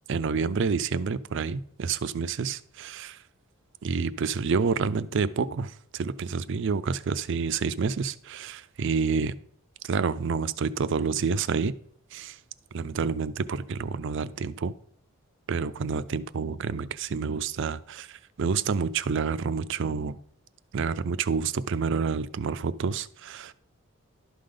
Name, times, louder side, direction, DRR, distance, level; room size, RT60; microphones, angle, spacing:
voice 1, 0.1-3.2 3.8-9.3 9.8-11.7 12.1-12.4 12.7-14.7 15.5-20.2 20.7-23.5, right 5 dB, 60° right, 15 dB, 0.4 m, -28 dB
12.0 x 5.1 x 3.8 m, 0.64 s
head